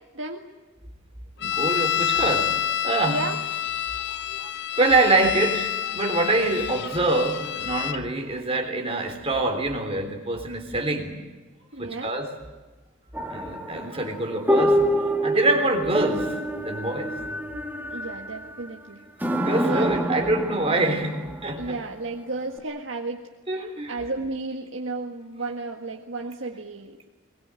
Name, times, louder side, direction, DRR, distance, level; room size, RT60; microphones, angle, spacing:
voice 1, 0.1-0.5 3.1-3.4 11.7-12.2 17.9-19.1 19.6-20.3 21.6-23.3 23.9-27.0, right 3 dB, 75° right, 1 dB, 1.8 m, -33 dB
sound 1, 1.4-8.0, left 10 dB, 60° left, 0.8 m, -28 dB
voice 2, 1.4-2.5 2.8-3.2 4.3-4.5 4.8-11.2 11.8-12.3 13.3-17.3 19.4-21.7 23.5-23.9, right 2 dB, 30° right, 3 dB, 3.6 m, -25 dB
sound 2, 13.1-18.6 19.2-21.6 22.6-22.7, right 1 dB, 10° right, 1.8 m, -26 dB
22.5 x 21.0 x 9.0 m, 1.2 s
head